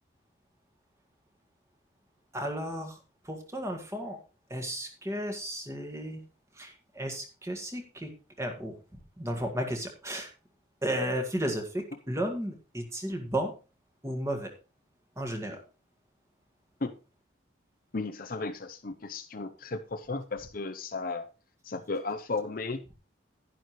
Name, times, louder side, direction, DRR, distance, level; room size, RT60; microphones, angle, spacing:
voice 1, 2.3-3.0 3.2-4.2 4.5-6.2 6.5-8.1 8.4-8.8 9.2-10.3 10.8-13.5 14.0-14.5 15.2-15.6, right 1 dB, 15° right, 1.8 m, -33 dB
voice 2, 17.9-21.2 21.6-22.8, left 3 dB, 45° left, 0.7 m, -34 dB
11.0 x 11.0 x 3.1 m
head